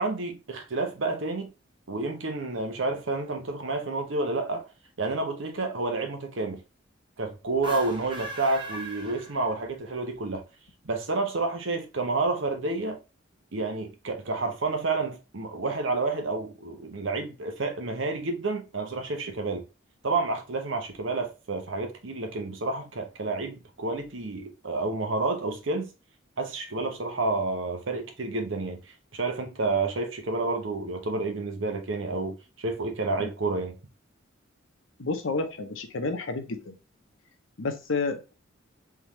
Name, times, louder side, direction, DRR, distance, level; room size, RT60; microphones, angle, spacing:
voice 1, 0.0-1.5 1.9-4.7 5.0-6.6 7.2-10.4 10.8-13.0 13.5-19.6 20.0-25.9 26.4-28.8 29.1-33.8, right 3 dB, 70° right, 0.9 m, -29 dB
sound 1, 7.5-9.9, right 2 dB, 25° right, 1.1 m, -39 dB
voice 2, 35.0-36.8 37.6-38.3, left 3 dB, 80° left, 0.8 m, -30 dB
3.7 x 3.5 x 3.0 m
head